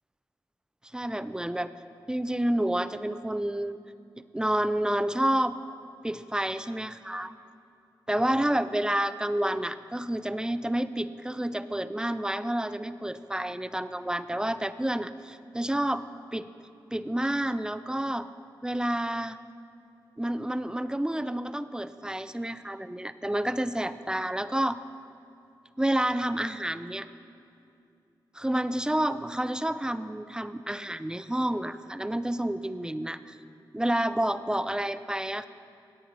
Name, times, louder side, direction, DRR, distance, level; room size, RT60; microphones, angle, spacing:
voice 1, 0.9-1.7 2.1-3.8 4.3-5.6 6.0-7.3 8.1-16.0 16.3-16.5 16.9-18.3 18.6-19.4 20.2-24.8 25.8-27.1 28.3-33.4 33.7-35.5, right 1 dB, 10° right, 13 dB, 0.4 m, -29 dB
15.0 x 8.8 x 4.0 m, 2.6 s
cardioid pair, 65°, 8 cm